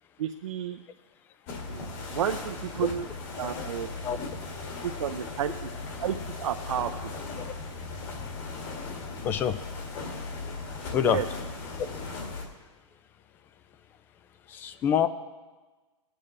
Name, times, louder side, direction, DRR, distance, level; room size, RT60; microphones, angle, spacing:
voice 1, 0.2-0.8 1.7-3.1 3.4-3.9 4.8-5.7 6.0-7.1 10.9-11.3, right 9 dB, 70° right, 6 dB, 0.6 m, -32 dB
sound 1, 1.5-12.4, left 3 dB, 35° left, 2.0 m, -37 dB
voice 2, 9.2-9.6 10.9-11.2 14.5-15.1, left 9 dB, 10° left, 13 dB, 0.3 m, -26 dB
20.0 x 8.8 x 3.3 m, 1.3 s
hypercardioid pair, 155°, 17 cm